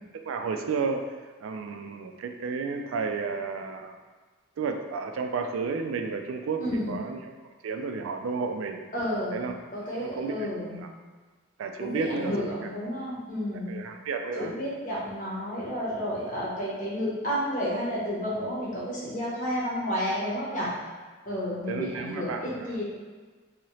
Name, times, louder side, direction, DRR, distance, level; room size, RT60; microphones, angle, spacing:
voice 1, 0.1-1.1 1.4-4.0 4.6-7.3 7.6-8.8 9.3-9.5 9.9-10.5 10.8-10.9 11.6-12.3 12.6-12.7 13.7-14.5 21.7-22.8, right 4 dB, 80° right, 5 dB, 0.3 m, -32 dB
voice 2, 6.6-6.9 8.9-10.8 11.8-13.8 14.4-20.7 21.3-22.8, equal, 40° left, -6 dB, 0.8 m, -31 dB
2.8 x 2.7 x 3.0 m, 1.4 s
head